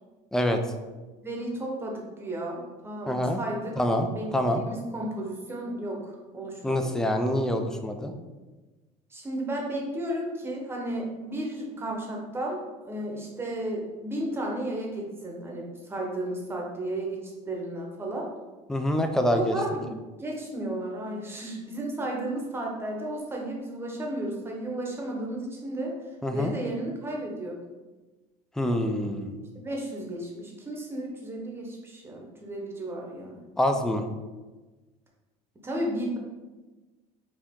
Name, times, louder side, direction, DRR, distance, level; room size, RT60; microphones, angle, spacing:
voice 1, 1.2-3.7 4.1-6.8 9.1-18.3 19.3-25.9 26.3-27.6 29.5-33.4 35.6-36.2, right 1 dB, 15° right, -1 dB, 0.9 m, -33 dB
voice 2, 3.1-3.4 3.8-4.6 6.6-8.1 18.7-19.6 26.2-26.5 28.6-29.4 33.6-34.0, left 1 dB, 5° left, 5 dB, 0.3 m, -26 dB
4.8 x 2.8 x 3.6 m, 1.2 s
cardioid pair, 140°, 17 cm